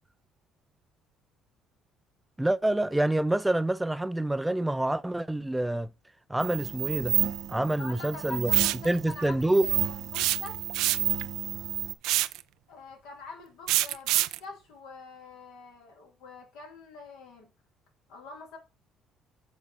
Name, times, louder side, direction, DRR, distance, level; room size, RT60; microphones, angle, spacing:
voice 1, 2.4-5.9 6.3-7.2 7.5-8.5 8.8-9.7, right 1 dB, 10° right, 0.4 m, -27 dB
sound 1, 6.4-11.9, right 10 dB, 65° right, 0.9 m, -30 dB
voice 2, 7.6-10.7 12.7-17.5 18.1-18.6, left 3 dB, 85° left, 3.9 m, -45 dB
sound 2, 8.5-8.9 10.1-11.2 12.0-12.4 13.7-14.4, right 16 dB, 85° right, 0.4 m, -26 dB
7.4 x 4.1 x 6.3 m
supercardioid pair, 85°, 0 cm